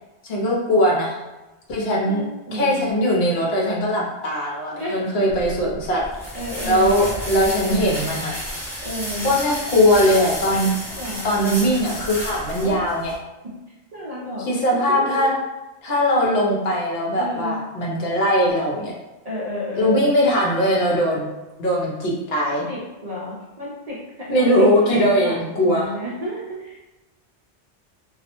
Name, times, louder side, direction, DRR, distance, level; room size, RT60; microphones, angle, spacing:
voice 1, 0.2-1.2 1.7-2.2 2.5-6.0 6.6-8.3 9.2-10.7 11.2-13.1 14.5-15.3 15.8-18.9 19.8-21.3 21.6-22.6 24.3-25.9, equal, 65° left, -3 dB, 0.8 m, -20 dB
voice 2, 2.0-2.9 4.7-5.0 5.6-5.7 6.3-7.1 8.8-9.3 11.0-11.5 12.6-12.8 13.4-13.5 13.9-14.4 15.0-15.2 17.2-17.6 19.2-20.1 22.4-24.5 24.8-25.4 25.6-26.8, equal, 50° right, -7 dB, 0.5 m, -31 dB
sound 1, 5.3-13.2, equal, 5° left, 0.5 m, -32 dB
2.3 x 2.0 x 2.8 m, 1.1 s
omnidirectional pair, 1.1 m